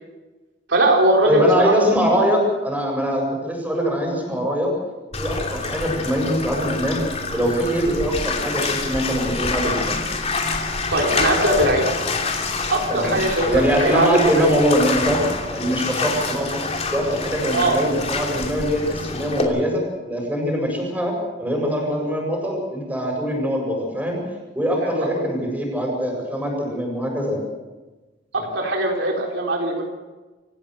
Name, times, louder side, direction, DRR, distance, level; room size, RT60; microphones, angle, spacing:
voice 1, 0.7-1.7 10.9-11.9 12.7-14.5 17.5-17.8 24.8-25.1 28.3-29.8, right 1 dB, 70° right, 0 dB, 3.9 m, -20 dB
voice 2, 1.2-4.7 5.2-7.0 7.3-10.0 12.9-13.1 13.4-15.2 15.5-16.6 16.9-24.2 24.5-27.4 28.3-28.4, equal, 10° right, 0 dB, 7.7 m, -22 dB
Bathtub (filling or washing), 5.1-19.4, left 3 dB, 35° left, 3.0 m, -27 dB
27.5 x 16.0 x 6.7 m, 1.2 s
head